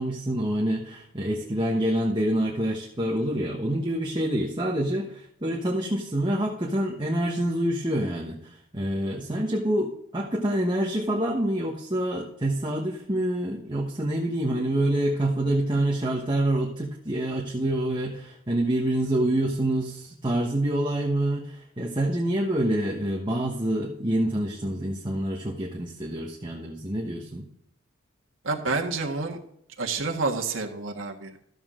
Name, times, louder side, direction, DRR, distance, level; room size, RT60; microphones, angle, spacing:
voice 1, 0.0-27.5, right 1 dB, 25° right, -1 dB, 1.2 m, -27 dB
voice 2, 28.4-29.4 29.8-31.4, right 3 dB, 80° right, 1 dB, 1.5 m, -28 dB
13.0 x 7.1 x 3.7 m, 0.73 s
head